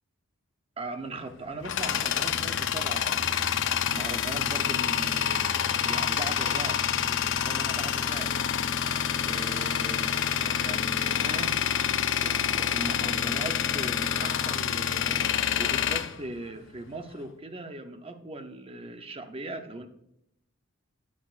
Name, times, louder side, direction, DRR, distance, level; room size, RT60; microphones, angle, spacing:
voice 1, 0.8-3.4 3.9-6.8 7.1-8.3 9.2-11.6 12.2-19.9, right 2 dB, 25° right, 7 dB, 0.7 m, -39 dB
Tools, 1.2-17.0, left 8 dB, 60° left, 0.5 m, -27 dB
12.5 x 8.4 x 2.5 m, 0.78 s
head